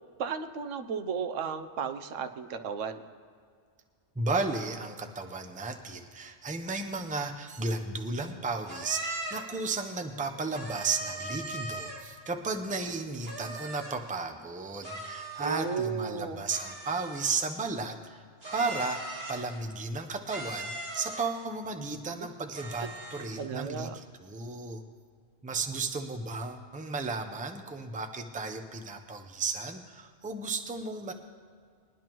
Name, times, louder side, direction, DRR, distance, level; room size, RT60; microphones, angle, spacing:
voice 1, 0.2-3.0 15.4-16.4 22.8-22.9 23.4-24.0, right 6 dB, 85° right, 8 dB, 1.1 m, -34 dB
voice 2, 4.1-18.2 18.5-24.8 25.4-31.1, right 3 dB, 10° right, 5 dB, 0.5 m, -34 dB
sound 1, 8.7-9.6 10.5-12.2 13.2-14.1 14.8-15.8 16.5-17.6 18.4-19.6 20.3-21.4 22.5-23.4, right 1 dB, 55° right, 1.9 m, -39 dB
21.0 x 10.5 x 3.0 m, 2.1 s
omnidirectional pair, 1.2 m